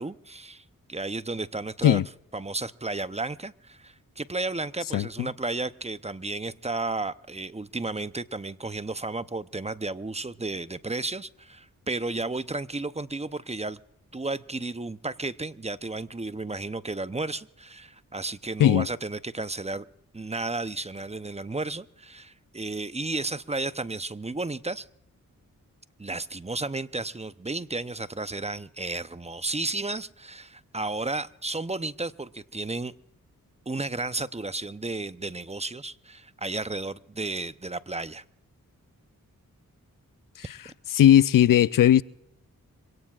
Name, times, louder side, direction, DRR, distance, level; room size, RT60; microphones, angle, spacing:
voice 1, 0.0-2.0 2.3-13.8 14.1-19.8 20.1-24.9 26.0-32.9 33.7-38.2, right 2 dB, 20° right, 0.7 m, -33 dB
voice 2, 4.9-5.3 18.6-18.9 40.4-40.6 40.9-42.0, left 11 dB, 65° left, 0.5 m, -18 dB
26.5 x 17.5 x 2.4 m
cardioid pair, 50°, 35 cm